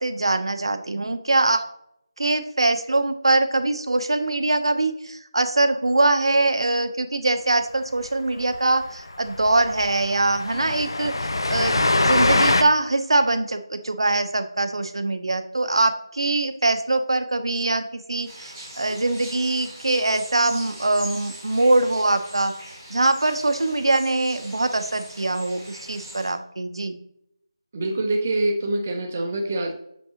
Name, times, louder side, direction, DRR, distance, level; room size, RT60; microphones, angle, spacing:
voice 1, 0.0-1.7 2.2-22.5 22.9-27.0, right 2 dB, 75° right, 8 dB, 0.8 m, -23 dB
Train, 8.1-8.2 8.4-8.6 8.8-8.9 9.3-12.6, left 2 dB, 60° left, 0.5 m, -23 dB
sound 1, 18.2-26.3, right 1 dB, 5° right, 1.1 m, -41 dB
voice 2, 27.7-29.7, right 2 dB, 20° right, 4 dB, 0.6 m, -25 dB
6.6 x 5.4 x 2.8 m, 0.76 s
figure-of-eight pair, 175°, 3 cm